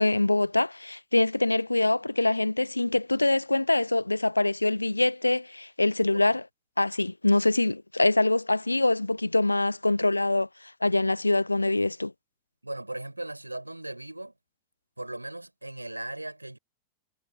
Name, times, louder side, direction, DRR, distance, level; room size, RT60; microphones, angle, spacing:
voice 1, 0.0-6.4 6.8-10.5 10.8-12.1, left 2 dB, 85° left, 0.3 m, -24 dB
voice 2, 12.6-14.3 15.0-16.6, right 1 dB, 85° right, 5.2 m, -38 dB
figure-of-eight pair, 90°, 0 cm